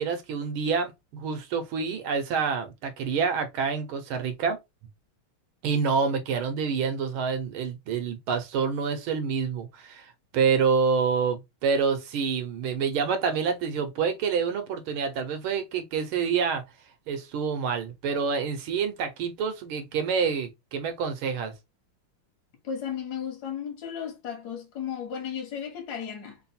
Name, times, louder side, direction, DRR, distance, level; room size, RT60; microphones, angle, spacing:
voice 1, 0.0-4.6 5.6-16.6 17.1-21.5, right 6 dB, 80° right, 1.6 m, -27 dB
voice 2, 22.6-26.4, left 8 dB, 55° left, 1.6 m, -34 dB
3.8 x 2.2 x 4.2 m
omnidirectional pair, 2.3 m